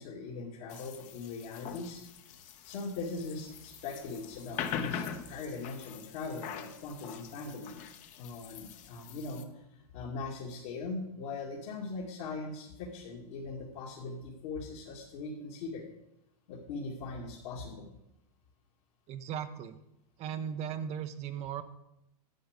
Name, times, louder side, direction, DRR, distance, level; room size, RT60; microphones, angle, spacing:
voice 1, 0.0-2.0 2.6-7.8 8.2-15.9 16.5-17.9, left 3 dB, 60° left, -3 dB, 2.3 m, -40 dB
sound 1, 0.7-9.4, left 8 dB, 40° left, 1.0 m, -43 dB
voice 2, 19.1-19.8 20.2-21.6, right 8 dB, 35° right, 9 dB, 0.7 m, -37 dB
10.5 x 7.7 x 6.6 m, 0.86 s
supercardioid pair, 135°, 20 cm